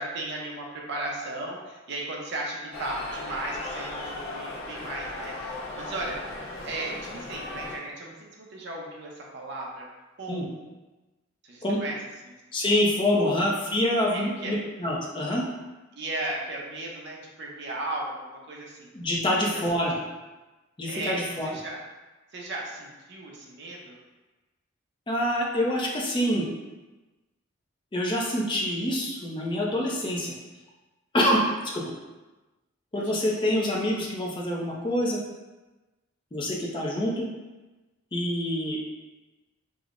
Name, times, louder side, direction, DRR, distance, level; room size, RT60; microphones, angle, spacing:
voice 1, 0.0-6.2 6.6-9.9 10.2-10.6 11.4-12.0 12.2-12.3 13.2-13.4 14.1-14.6 15.9-18.9 19.5-19.6 19.9-20.1 20.8-21.8 22.3-24.0 32.9-33.1, right 2 dB, 60° right, -2 dB, 0.6 m, -36 dB
sound 1, 2.7-7.8, left 2 dB, 70° left, 0.6 m, -37 dB
voice 2, 12.5-15.4 18.9-19.9 20.8-21.5 25.1-26.5 27.9-30.3 31.1-31.4 31.7-31.9 32.9-35.2 36.3-37.3 38.1-38.8, left 1 dB, 25° left, -3 dB, 0.5 m, -26 dB
4.9 x 2.1 x 2.5 m, 1.1 s
head